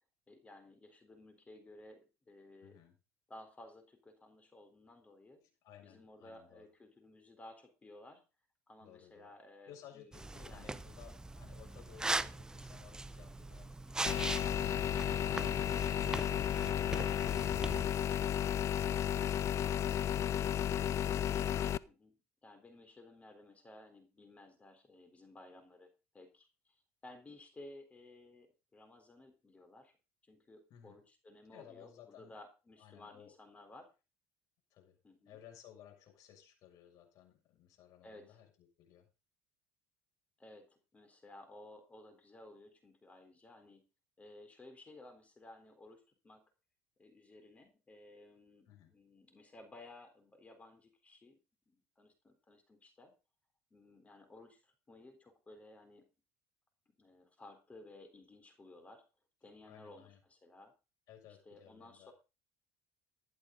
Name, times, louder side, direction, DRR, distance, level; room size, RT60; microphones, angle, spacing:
voice 1, 0.3-2.8 3.3-5.4 5.8-8.2 8.7-10.7 11.1-11.2 13.9-14.2 21.9-22.2 22.4-25.9 26.1-29.9 30.2-33.9 35.0-35.4 38.0-38.4 40.4-43.8 44.2-46.4 47.0-51.4 51.7-53.1 53.7-56.0 57.0-59.0 59.4-60.7 61.5-62.1, left 2 dB, 20° left, 7 dB, 4.1 m, -56 dB
voice 2, 2.6-3.0 5.6-6.7 8.8-9.3 9.7-16.6 30.7-31.0 31.5-32.4 32.8-33.3 34.7-35.0 35.2-39.1 48.6-48.9 59.6-60.2 61.1-62.1, left 10 dB, 60° left, 3 dB, 7.0 m, -59 dB
sound 1, 10.1-17.9, right 2 dB, 10° right, 0.8 m, -41 dB
sound 2, 14.1-21.8, left 10 dB, 45° left, 0.6 m, -33 dB
15.5 x 11.5 x 4.0 m, 0.31 s
supercardioid pair, 100°, 7 cm